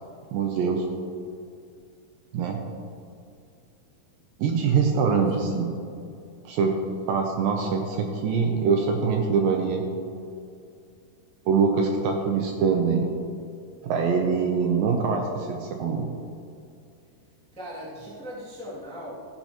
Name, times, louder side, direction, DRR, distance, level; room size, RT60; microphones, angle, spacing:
voice 1, 0.3-0.8 2.3-2.6 4.4-5.7 6.5-6.7 7.1-9.8 11.5-13.1 13.8-16.1, right 5 dB, 75° right, 3 dB, 2.2 m, -24 dB
voice 2, 5.1-5.6 17.5-19.1, equal, 5° left, -7 dB, 1.1 m, -39 dB
14.5 x 10.0 x 3.0 m, 2.4 s
omnidirectional pair, 4.6 m